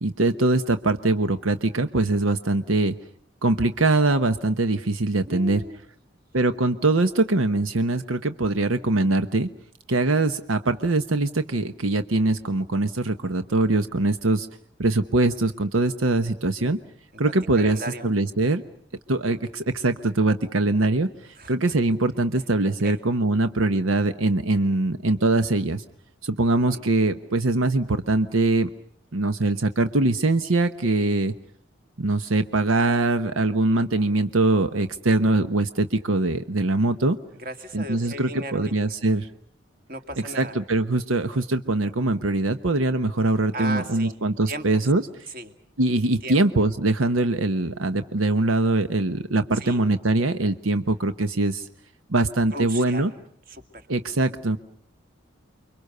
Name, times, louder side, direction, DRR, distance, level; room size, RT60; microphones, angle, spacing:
voice 1, 0.0-2.9 3.4-5.6 6.3-9.5 9.9-14.5 14.8-16.8 17.2-18.6 19.1-21.1 21.5-25.8 26.2-28.7 29.1-31.3 32.0-37.2 37.7-39.3 40.3-45.0 45.8-51.7 52.1-53.1 53.9-54.6, right 2 dB, 90° right, 9 dB, 1.1 m, -22 dB
voice 2, 5.2-5.8 17.1-18.1 21.4-21.5 22.8-23.0 26.6-26.8 37.3-38.9 39.9-40.6 43.5-44.2 44.5-44.6 45.3-45.5 46.2-46.4 49.5-49.8 52.5-53.1 53.5-53.9, right 1 dB, 45° right, 7 dB, 2.2 m, -36 dB
29.5 x 23.5 x 6.7 m, 0.64 s
head